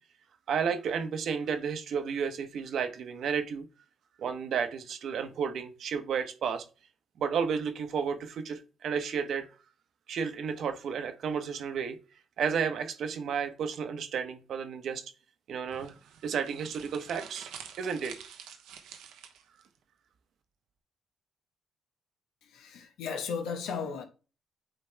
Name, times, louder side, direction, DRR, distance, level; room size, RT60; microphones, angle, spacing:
voice 1, 0.5-3.7 4.2-6.6 7.2-9.5 10.1-12.0 12.4-15.0 15.5-15.9 16.2-17.5 17.8-18.1, right 6 dB, 65° right, 1.0 m, -32 dB
sound 1, 15.7-19.7, right 8 dB, 90° right, 0.9 m, -48 dB
voice 2, 22.4-24.0, left 6 dB, 85° left, 1.1 m, -35 dB
8.9 x 3.4 x 3.3 m
cardioid pair, 90°, 0 cm